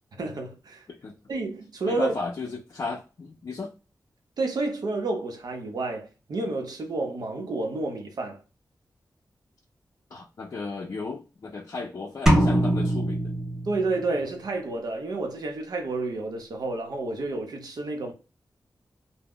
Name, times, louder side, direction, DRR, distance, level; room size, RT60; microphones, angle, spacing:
voice 1, 0.1-0.8 1.3-2.2 4.4-8.4 13.6-18.1, right 2 dB, 75° right, 0.7 m, -30 dB
voice 2, 1.9-3.7 10.1-13.3, left 4 dB, 50° left, 0.5 m, -35 dB
sound 1, 12.3-14.2, right 1 dB, 10° right, 0.6 m, -23 dB
2.1 x 2.1 x 3.5 m
wide cardioid pair, 145°, 7 cm